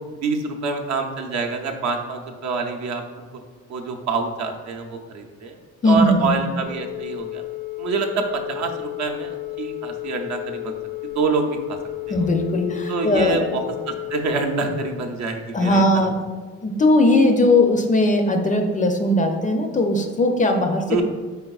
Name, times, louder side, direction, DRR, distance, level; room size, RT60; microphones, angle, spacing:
voice 1, 0.2-3.2 3.7-5.6 5.8-7.4 7.8-10.8 11.0-11.8 12.1-12.3 12.9-16.1 20.9-21.0, right 4 dB, 65° right, 3 dB, 0.6 m, -26 dB
voice 2, 5.8-6.4 12.1-13.5 15.5-16.1 16.6-21.0, left 1 dB, 25° left, 5 dB, 0.4 m, -19 dB
Telephone, 6.6-14.9, left 22 dB, 90° left, 0.5 m, -32 dB
4.6 x 3.4 x 2.3 m, 1.4 s
cardioid pair, 90°, 30 cm